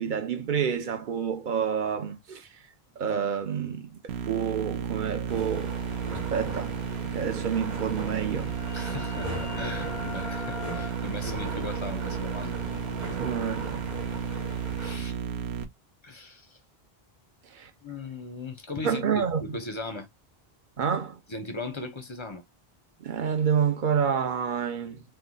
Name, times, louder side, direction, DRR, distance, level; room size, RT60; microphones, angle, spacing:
voice 1, 0.0-2.5 3.0-5.8 6.1-6.8 7.0-8.5 13.1-13.9 15.0-15.2 17.4-17.7 18.8-19.6 20.8-21.2 23.0-25.0, right 7 dB, 55° right, 0.8 m, -29 dB
sound 1, 4.1-15.6, right 7 dB, 90° right, 0.9 m, -33 dB
sound 2, 5.3-15.0, right 2 dB, 30° right, 1.1 m, -39 dB
sound 3, 7.9-13.4, left 5 dB, 90° left, 0.8 m, -45 dB
voice 2, 8.7-12.6 14.8-15.2 16.0-16.6 17.8-20.1 21.3-22.4, left 2 dB, 35° left, 0.5 m, -38 dB
3.0 x 2.2 x 3.8 m
omnidirectional pair, 1.0 m